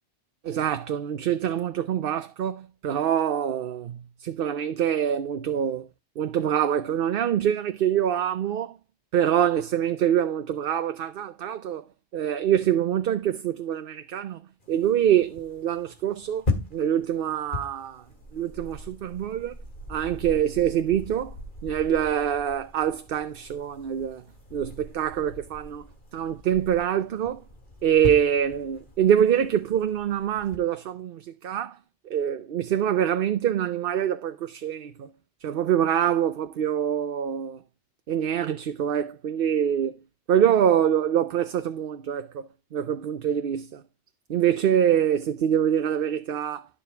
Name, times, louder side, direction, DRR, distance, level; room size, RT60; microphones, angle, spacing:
voice 1, 0.4-5.9 6.2-8.8 9.1-11.9 12.1-14.4 14.7-18.0 18.3-19.5 19.9-21.4 21.6-24.2 24.5-25.9 26.1-27.4 27.8-31.8 32.1-35.1 35.4-37.6 38.1-40.0 40.3-43.8 44.3-46.7, right 9 dB, 60° right, 0.8 m, -25 dB
sound 1, 14.6-30.6, left 2 dB, 45° left, 2.3 m, -39 dB
11.0 x 7.1 x 3.3 m
omnidirectional pair, 1.2 m